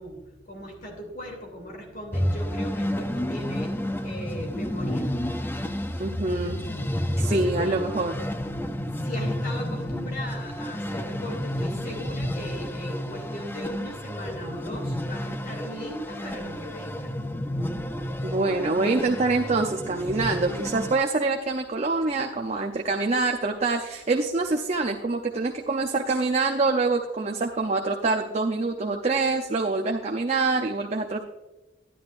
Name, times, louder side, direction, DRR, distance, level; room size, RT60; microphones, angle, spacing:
voice 1, 0.0-3.8 4.0-5.2 7.1-7.9 8.9-17.2, equal, 50° left, 2 dB, 2.8 m, -38 dB
sound 1, 2.1-21.0, equal, 10° left, 0.5 m, -31 dB
voice 2, 6.0-6.6 7.2-8.1 18.2-31.2, right 3 dB, 35° right, 2 dB, 0.6 m, -25 dB
11.0 x 11.0 x 2.5 m, 1.1 s
head